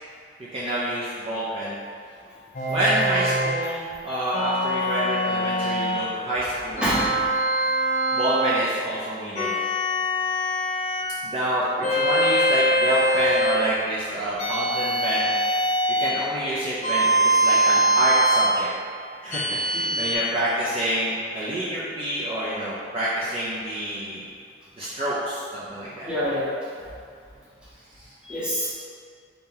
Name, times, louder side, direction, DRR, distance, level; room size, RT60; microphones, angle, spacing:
voice 1, 0.5-1.8 2.7-6.9 8.1-9.5 11.2-15.3 16.0-18.7 19.2-24.2 24.8-26.1 28.0-28.1, right 1 dB, 30° right, -10 dB, 0.5 m, -27 dB
sound 1, 2.5-3.6 4.3-6.1 6.8-8.6 9.3-11.1 11.8-13.6 14.4-16.2 16.8-18.6 19.3-20.1, right 1 dB, 35° left, 0.4 m, -23 dB
voice 2, 6.8-7.2 19.8-19.9 26.1-26.5 28.3-28.7, equal, 5° right, -9 dB, 0.8 m, -25 dB
4.2 x 2.7 x 3.8 m, 2.3 s
head